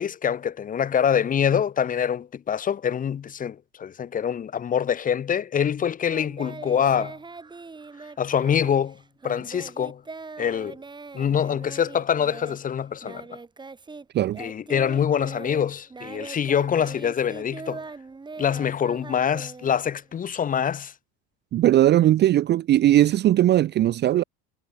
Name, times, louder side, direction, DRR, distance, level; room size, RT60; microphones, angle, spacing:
voice 1, 0.0-7.2 8.2-9.0 9.2-10.0 10.4-10.8 11.1-13.2 14.4-17.8 18.4-20.9, left 8 dB, 25° left, 1.1 m, -25 dB
Singing, 6.1-14.1 14.3-20.2, right 4 dB, 15° right, 4.0 m, -41 dB
voice 2, 21.5-24.2, right 13 dB, 35° right, 0.6 m, -19 dB
cardioid pair, 140°, 31 cm